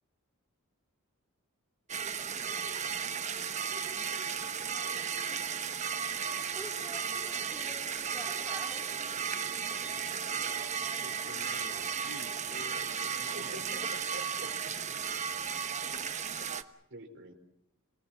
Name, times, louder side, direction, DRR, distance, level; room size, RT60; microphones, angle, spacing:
sound 1, 1.9-16.6, right 7 dB, 35° right, 1.1 m, -35 dB
voice 1, 6.5-8.9, equal, 5° right, 1 dB, 3.3 m, -48 dB
voice 2, 11.0-13.7, left 4 dB, 55° left, 12 dB, 1.1 m, -49 dB
voice 3, 13.2-14.9 16.9-17.3, right 1 dB, 55° right, 5 dB, 4.5 m, -47 dB
27.0 x 20.0 x 7.3 m, 0.81 s
head